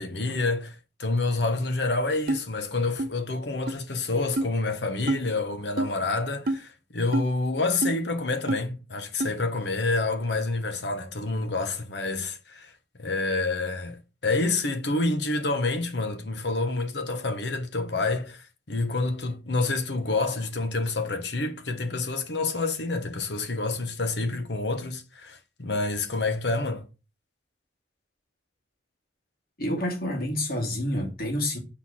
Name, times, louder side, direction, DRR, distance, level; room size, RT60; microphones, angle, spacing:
voice 1, 0.0-12.7 13.0-26.9, left 3 dB, 75° left, 1.2 m, -28 dB
sound 1, 2.3-2.4 3.0-3.1 3.7-3.8 4.4-4.5 5.1-5.2 5.8-5.9 6.5-6.6 7.1-7.3 7.8-8.0 8.5-8.6 9.2-9.3, right 1 dB, 55° right, 0.9 m, -26 dB
voice 2, 29.6-31.6, left 1 dB, 60° left, 2.5 m, -28 dB
6.3 x 4.0 x 6.0 m
head